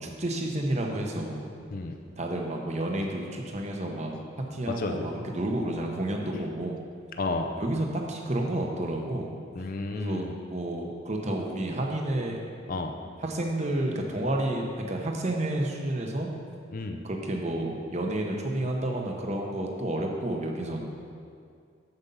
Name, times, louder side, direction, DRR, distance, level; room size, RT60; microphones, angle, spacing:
voice 1, 0.0-1.5 2.2-6.8 7.6-9.3 9.9-12.4 13.2-16.3 17.0-20.8, right 1 dB, 35° right, 1 dB, 1.0 m, -30 dB
voice 2, 4.7-5.1 6.3-6.4 7.2-7.5 9.5-10.3 12.7-13.0 16.7-17.0, left 2 dB, 45° left, 4 dB, 0.5 m, -32 dB
8.0 x 7.1 x 5.5 m, 2.3 s
head